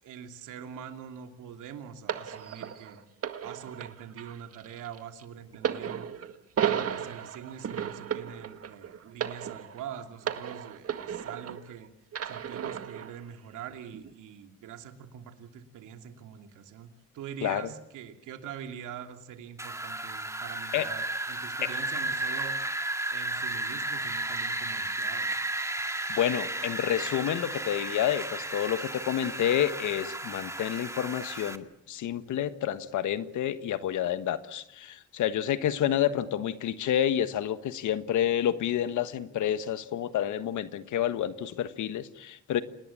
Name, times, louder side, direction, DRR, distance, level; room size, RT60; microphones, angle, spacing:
voice 1, 0.0-3.0 3.4-6.3 6.6-11.9 12.2-16.9 17.1-22.8 23.1-25.4, right 8 dB, 85° right, 5 dB, 2.8 m, -44 dB
sound 1, 2.1-11.7 12.1-13.2 13.9-14.1, right 8 dB, 50° right, 1.9 m, -34 dB
Wind, 19.6-31.6, right 2 dB, 10° right, 1.9 m, -33 dB
voice 2, 26.1-42.6, left 10 dB, 75° left, 12 dB, 1.4 m, -29 dB
28.0 x 19.5 x 8.7 m, 0.82 s
cardioid pair, 90°, 30 cm